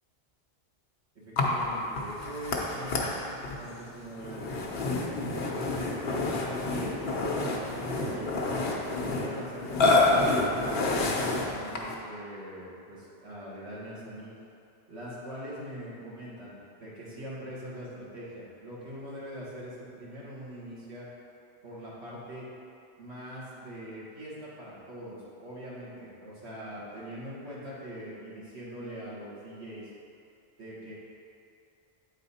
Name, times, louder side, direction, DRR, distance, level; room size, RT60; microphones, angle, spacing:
voice 1, 1.2-6.9 7.7-8.3 8.8-14.3 14.9-21.1 21.6-22.5 23.0-29.9 30.6-30.9, equal, 85° right, -8 dB, 2.0 m, -42 dB
Burping eructation, 1.4-12.1, left 2 dB, 70° left, 1.0 m, -28 dB
8.4 x 4.2 x 4.1 m, 2.6 s
omnidirectional pair, 1.1 m